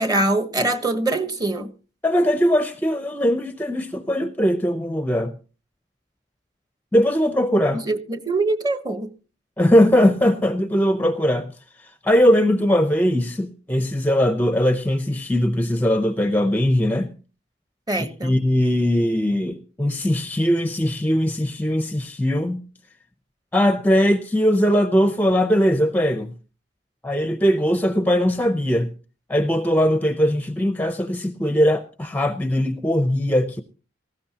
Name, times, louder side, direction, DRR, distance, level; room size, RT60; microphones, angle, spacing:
voice 1, 0.0-1.7 7.9-9.1 17.9-18.4, right 2 dB, 20° right, 1.1 m, -23 dB
voice 2, 2.0-5.3 6.9-7.8 9.6-11.5 12.0-17.1 18.2-22.6 23.5-26.3 27.0-28.9 29.3-33.6, equal, 10° left, 0.6 m, -20 dB
18.5 x 15.0 x 2.8 m
head